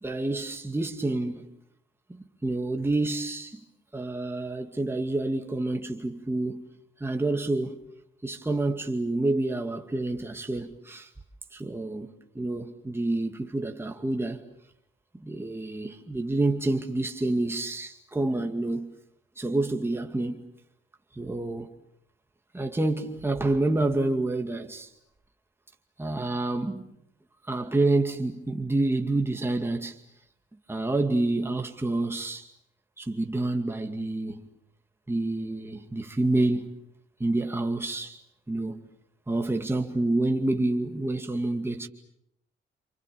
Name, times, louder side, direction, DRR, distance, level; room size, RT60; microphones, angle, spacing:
voice 1, 0.0-1.5 2.1-3.6 3.9-6.7 7.0-7.8 8.2-11.1 11.5-14.4 15.2-18.9 19.4-20.4 21.1-21.7 22.5-24.9 26.0-26.9 27.5-30.0 30.7-32.5 33.0-34.5 35.1-36.8 37.2-38.2 38.5-38.9 39.3-41.9, right 2 dB, 10° right, 2.3 m, -28 dB
28.5 x 28.5 x 7.1 m
cardioid pair, 90°, 20 cm